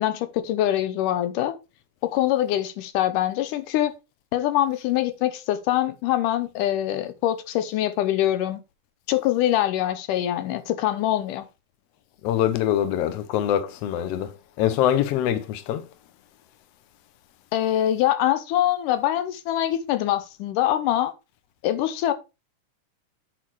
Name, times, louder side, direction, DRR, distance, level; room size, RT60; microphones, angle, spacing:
voice 1, 0.0-1.6 2.0-3.9 4.3-8.6 9.1-11.5 17.5-21.1 21.6-22.1, left 12 dB, 90° left, 2.5 m, -24 dB
voice 2, 12.2-14.3 14.6-15.8, left 11 dB, 65° left, 1.7 m, -23 dB
8.5 x 4.2 x 4.6 m
omnidirectional pair, 3.6 m